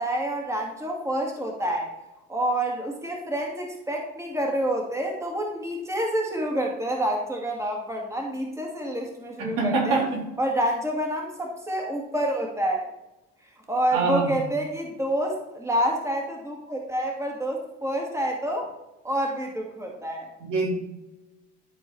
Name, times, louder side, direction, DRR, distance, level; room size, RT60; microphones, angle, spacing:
voice 1, 0.0-1.9 2.3-10.0 10.4-12.8 13.7-18.7 19.0-20.3, right 1 dB, 10° right, 0 dB, 2.4 m, -28 dB
voice 2, 9.4-10.3 13.9-14.4 20.4-20.7, right 4 dB, 65° right, -2 dB, 3.8 m, -25 dB
13.0 x 4.5 x 4.8 m, 0.97 s
hypercardioid pair, 75°, 36 cm